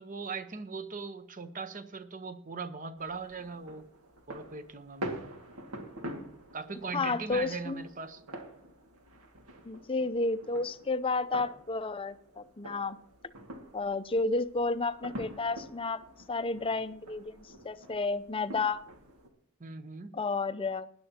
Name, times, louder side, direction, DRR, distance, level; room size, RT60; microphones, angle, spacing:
voice 1, 0.0-3.9 4.3-5.1 6.5-8.2 19.6-20.1, right 4 dB, 35° right, 10 dB, 0.9 m, -40 dB
sound 1, 3.0-19.3, right 1 dB, 80° right, 2.0 m, -46 dB
voice 2, 6.9-7.8 9.7-13.0 13.7-16.0 16.3-18.8 20.1-20.9, left 3 dB, 25° left, 13 dB, 0.5 m, -31 dB
19.5 x 11.0 x 2.9 m, 0.64 s
head